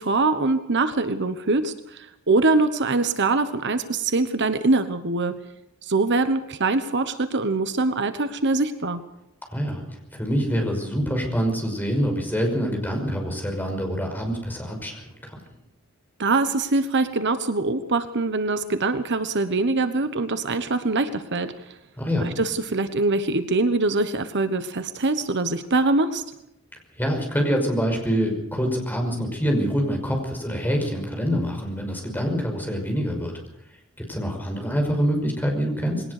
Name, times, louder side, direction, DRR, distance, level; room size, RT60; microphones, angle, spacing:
voice 1, 0.0-5.3 5.8-9.0 16.2-21.8 22.2-26.2, right 3 dB, 55° right, 10 dB, 1.2 m, -23 dB
voice 2, 9.5-9.8 10.1-15.4 22.0-22.3 27.0-33.3 34.0-36.0, equal, 10° left, 2 dB, 5.6 m, -25 dB
21.5 x 18.5 x 6.7 m, 0.82 s
head